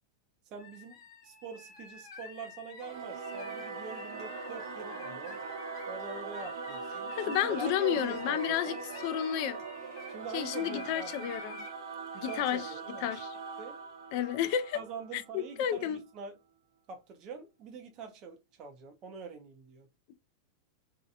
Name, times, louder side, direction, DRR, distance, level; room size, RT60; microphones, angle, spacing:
voice 1, 0.5-1.0 1.2-5.4 5.8-8.8 10.1-11.3 12.1-13.2 13.6-13.8 14.7-16.4 16.9-19.9, right 5 dB, 25° right, 0.5 m, -44 dB
sound 1, 0.6-10.2 10.5-11.7 12.1-12.4, left 4 dB, 80° left, 1.0 m, -50 dB
Singing / Musical instrument, 2.8-15.7, right 4 dB, 65° right, 0.7 m, -41 dB
voice 2, 7.1-8.8 9.0-9.6 10.3-11.6 12.2-12.7 13.0-13.4 14.1-14.8 15.1-16.0, left 10 dB, 35° left, 0.3 m, -31 dB
2.7 x 2.1 x 2.5 m
supercardioid pair, 170°, 2 cm